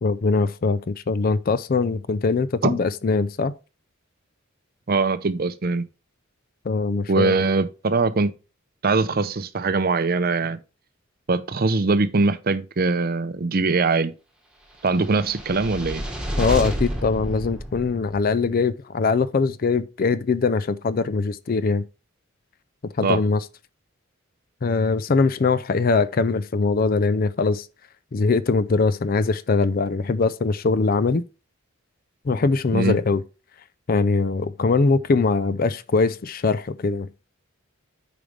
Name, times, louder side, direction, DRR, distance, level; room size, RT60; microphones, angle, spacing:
voice 1, 0.0-3.5 6.7-7.3 16.4-21.8 23.0-23.4 24.6-27.7 28.1-31.2 32.3-33.2 33.9-37.1, left 4 dB, 40° left, 0.4 m, -22 dB
voice 2, 4.9-5.9 7.1-8.3 8.8-10.6 11.3-14.1 14.8-16.0 23.0-23.2 32.7-33.0, right 3 dB, 45° right, 0.6 m, -22 dB
sound 1, 15.0-18.4, equal, 5° right, 1.4 m, -29 dB
8.9 x 5.1 x 3.2 m
head